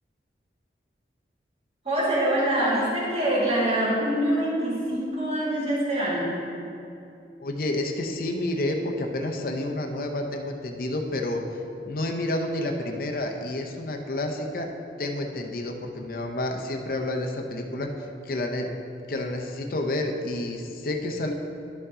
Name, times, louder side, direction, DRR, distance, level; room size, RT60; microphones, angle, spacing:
voice 1, 1.9-6.3, right 1 dB, 35° right, -7 dB, 2.0 m, -24 dB
voice 2, 7.4-11.4 11.8-14.7 15.0-18.7 19.1-21.3, left 1 dB, 55° left, 3 dB, 0.6 m, -29 dB
11.5 x 5.5 x 3.7 m, 2.7 s
head